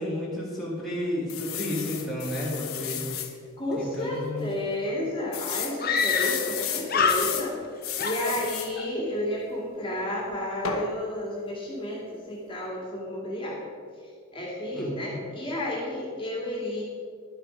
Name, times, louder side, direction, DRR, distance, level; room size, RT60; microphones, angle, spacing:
voice 1, 0.0-3.0 3.8-4.5 14.7-15.2, left 1 dB, ahead, -8 dB, 2.0 m, -32 dB
sound 1, 1.3-3.3 3.8-4.0 4.2-4.3 5.3-7.5 7.8-8.7 10.6-10.9, left 8 dB, 70° left, 1.1 m, -33 dB
voice 2, 3.6-7.5 8.0-13.7 14.3-16.8, left 1 dB, 25° left, -4 dB, 2.1 m, -31 dB
Screaming, 4.7-4.8 5.0-5.1 5.8-6.6 6.9-7.7 8.0-8.9, left 5 dB, 45° left, 0.7 m, -26 dB
11.5 x 7.5 x 5.0 m, 2.1 s
head